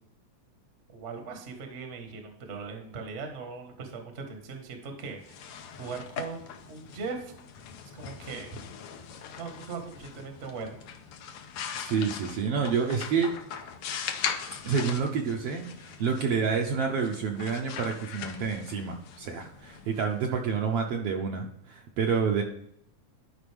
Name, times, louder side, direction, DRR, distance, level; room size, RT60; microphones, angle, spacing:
voice 1, 0.9-5.5 5.8-6.4 6.7-7.3 7.9-8.6 9.4-10.8, right 4 dB, 40° right, 4 dB, 1.1 m, -39 dB
sound 1, 5.1-20.8, left 7 dB, 70° left, 1.6 m, -40 dB
voice 2, 11.7-13.3 14.6-22.4, right 6 dB, 70° right, 1 dB, 1.6 m, -28 dB
11.5 x 5.2 x 3.4 m, 0.73 s
omnidirectional pair, 3.4 m